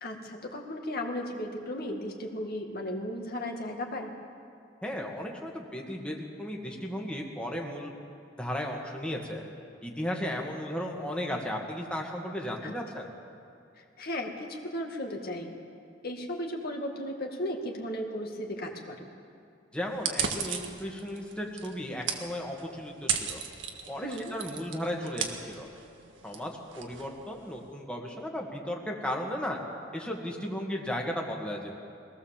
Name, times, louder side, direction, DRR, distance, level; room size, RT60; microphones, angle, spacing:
voice 1, 0.0-4.1 12.6-13.0 13.8-15.6 16.0-19.1 24.0-24.3, left 1 dB, 55° left, 2 dB, 2.1 m, -35 dB
voice 2, 4.8-7.9 8.4-9.4 9.8-13.1 19.7-23.4 23.9-25.7 26.2-29.6 29.9-31.7, equal, 5° left, -1 dB, 1.9 m, -35 dB
sound 1, 19.9-27.7, right 7 dB, 80° right, 1.7 m, -36 dB
22.5 x 17.5 x 7.4 m, 2.4 s
head